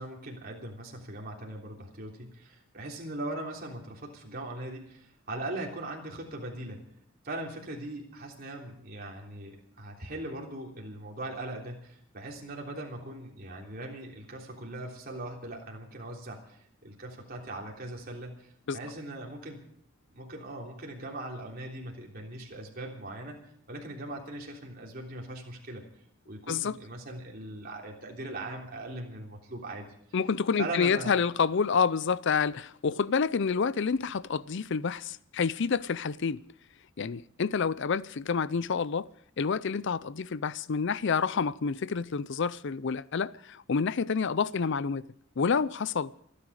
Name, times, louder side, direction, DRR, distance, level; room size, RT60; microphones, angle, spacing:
voice 1, 0.0-6.9 7.2-19.6 20.1-23.4 23.7-25.8 26.3-29.9 30.6-31.2, right 1 dB, 45° right, 3.4 m, -40 dB
voice 2, 30.1-36.4 37.0-39.1 39.4-45.1 45.4-46.1, left 5 dB, 60° left, 0.5 m, -28 dB
27.0 x 10.0 x 4.9 m
head